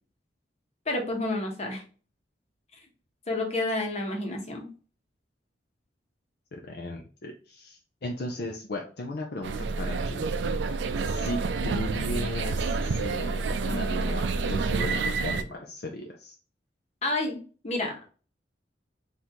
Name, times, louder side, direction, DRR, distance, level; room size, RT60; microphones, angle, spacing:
voice 1, 0.9-1.8 3.3-4.7 17.0-18.1, left 2 dB, 35° left, 2 dB, 1.1 m, -30 dB
voice 2, 6.5-10.3 11.0-16.4, left 1 dB, 60° left, 1 dB, 0.6 m, -36 dB
sound 1, 9.4-15.4, right 4 dB, 80° right, 0.4 m, -28 dB
3.6 x 2.6 x 4.4 m, 0.38 s
head